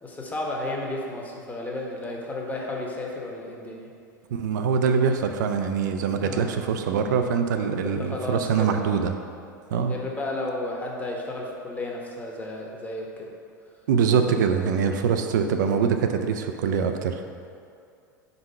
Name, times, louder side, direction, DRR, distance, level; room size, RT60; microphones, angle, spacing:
voice 1, 0.0-3.9 6.2-6.6 7.8-8.9 9.8-13.3, left 2 dB, 15° left, -2 dB, 1.1 m, -33 dB
voice 2, 4.3-9.2 9.7-10.0 13.9-17.2, right 6 dB, 65° right, 6 dB, 0.5 m, -24 dB
4.7 x 4.0 x 5.5 m, 2.4 s
hypercardioid pair, 85°, 10 cm